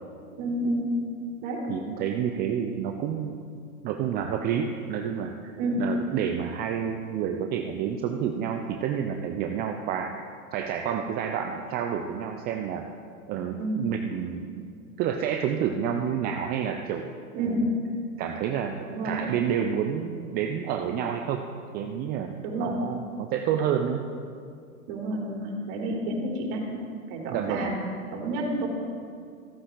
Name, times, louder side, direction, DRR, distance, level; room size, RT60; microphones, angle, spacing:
voice 1, 0.3-0.9 1.4-1.7 5.5-5.8 13.6-13.9 17.3-17.7 18.8-19.2 22.4-22.8 24.9-26.7 27.1-27.8 28.1-28.7, right 1 dB, 40° right, -2 dB, 3.5 m, -29 dB
voice 2, 1.7-3.5 3.8-5.5 5.8-10.1 10.5-12.9 13.3-14.6 15.0-17.1 17.4-17.7 18.2-18.8 19.0-21.4 21.7-24.1 27.3-27.7, right 8 dB, 25° right, 4 dB, 0.5 m, -29 dB
15.5 x 9.4 x 3.9 m, 2.3 s
hypercardioid pair, 110°, 42 cm